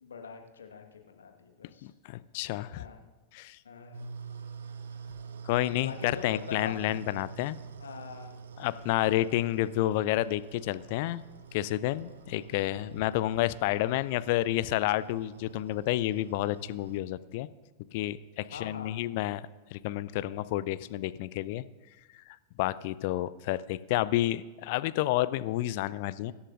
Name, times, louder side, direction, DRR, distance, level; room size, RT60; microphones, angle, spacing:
voice 1, 0.0-1.9 2.7-3.0 3.6-4.0 5.8-7.1 7.8-8.4 18.5-18.9, left 6 dB, 70° left, 4 dB, 1.5 m, -44 dB
voice 2, 1.8-2.8 3.3-3.6 5.4-7.6 8.6-11.2 11.5-17.5 17.9-19.4 19.7-21.6 22.6-26.3, left 15 dB, 50° left, 17 dB, 0.4 m, -30 dB
sound 1, 3.9-17.0, right 5 dB, 65° right, 0.9 m, -47 dB
24.0 x 11.0 x 2.5 m, 1.2 s
figure-of-eight pair, 90°, 0 cm